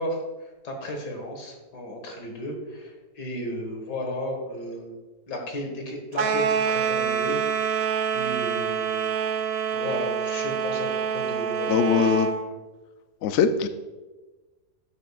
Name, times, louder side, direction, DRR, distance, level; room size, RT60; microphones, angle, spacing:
voice 1, 0.0-5.0 5.3-9.0 9.7-12.1, left 1 dB, 85° left, 2 dB, 2.2 m, -34 dB
sound 1, 6.1-12.4, right 7 dB, 65° right, 1.0 m, -26 dB
voice 2, 11.7-12.3 13.2-13.7, left 7 dB, 70° left, 10 dB, 0.7 m, -21 dB
12.0 x 7.3 x 2.4 m, 1.2 s
omnidirectional pair, 1.8 m